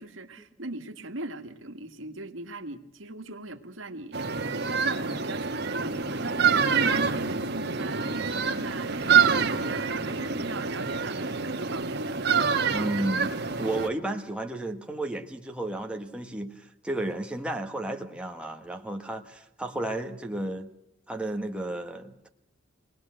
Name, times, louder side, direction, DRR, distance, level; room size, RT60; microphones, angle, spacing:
voice 1, 0.0-12.7, right 2 dB, 85° right, 1.9 m, -39 dB
sound 1, 4.1-13.9, right 6 dB, 55° right, 1.8 m, -26 dB
voice 2, 12.7-13.3 13.6-20.7 21.1-22.3, right 1 dB, 5° right, 1.6 m, -33 dB
23.5 x 19.0 x 7.8 m
head